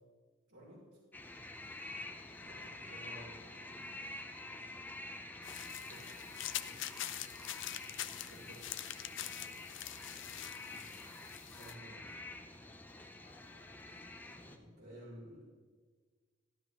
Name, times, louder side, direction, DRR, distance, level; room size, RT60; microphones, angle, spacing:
voice 1, 0.5-0.8 2.4-3.5 5.8-6.2 6.6-6.8 8.3-8.7 11.5-12.2 14.3-15.4, equal, 85° right, -7 dB, 3.2 m, -54 dB
sound 1, 1.1-14.6, left 2 dB, 10° left, 0.6 m, -48 dB
sound 2, 5.4-11.7, left 12 dB, 70° left, 0.5 m, -44 dB
voice 2, 13.1-14.0, left 2 dB, 40° left, -1 dB, 1.8 m, -71 dB
12.5 x 12.5 x 3.1 m, 1.5 s
head